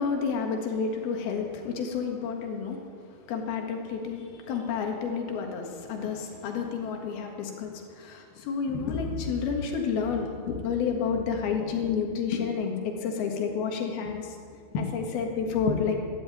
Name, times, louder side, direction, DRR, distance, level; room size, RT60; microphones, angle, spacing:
voice 1, 0.0-2.8 3.1-16.0, left 6 dB, 80° left, 2 dB, 3.6 m, -30 dB
13.0 x 12.5 x 8.9 m, 2.2 s
omnidirectional pair, 4.4 m